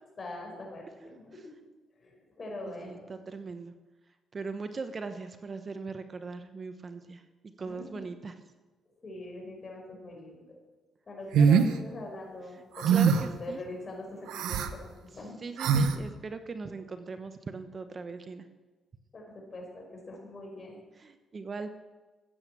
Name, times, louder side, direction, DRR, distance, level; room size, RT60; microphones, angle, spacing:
voice 1, 0.2-1.5 2.0-3.0 7.7-8.1 9.0-10.5 11.1-15.4 19.1-20.8, left 2 dB, 40° left, 0 dB, 5.2 m, -42 dB
voice 2, 2.7-3.7 4.3-7.2 7.6-8.4 12.9-13.6 15.4-18.5 21.0-21.7, right 4 dB, 35° right, 9 dB, 1.0 m, -39 dB
sound 1, 11.3-11.7 12.8-13.3 14.3-14.7 15.6-16.0, right 6 dB, 85° right, 1.0 m, -22 dB
14.5 x 9.0 x 7.5 m, 1.2 s
cardioid pair, 90°, 0 cm